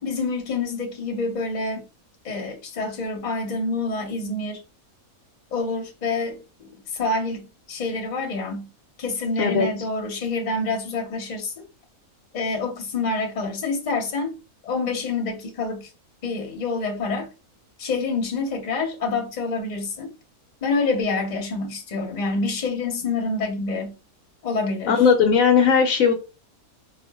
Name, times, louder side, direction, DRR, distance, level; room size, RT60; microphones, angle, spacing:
voice 1, 0.0-1.8 2.2-4.6 5.5-8.7 9.0-11.6 12.3-14.3 14.6-15.9 16.2-17.3 17.8-20.1 20.6-23.9 24.4-25.0, left 3 dB, 35° left, 0.8 m, -27 dB
voice 2, 24.9-26.1, left 6 dB, 70° left, 0.9 m, -17 dB
4.2 x 2.4 x 2.3 m
omnidirectional pair, 1.6 m